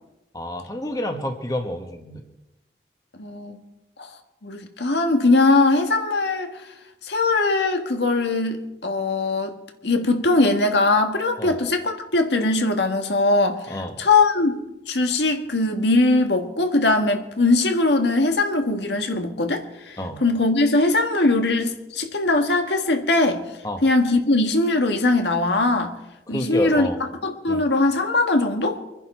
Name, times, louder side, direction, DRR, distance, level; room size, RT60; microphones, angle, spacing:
voice 1, 0.3-2.2 11.4-11.6 13.7-13.9 20.0-20.2 23.6-23.8 26.3-27.0 27.5-27.6, left 1 dB, 20° left, 1.3 m, -28 dB
voice 2, 3.2-3.6 4.0-4.1 4.4-6.6 7.0-9.5 9.8-14.6 14.9-23.4 23.8-25.9 26.3-26.9 27.2-28.8, left 2 dB, 80° left, 1.7 m, -21 dB
24.5 x 10.5 x 4.5 m
head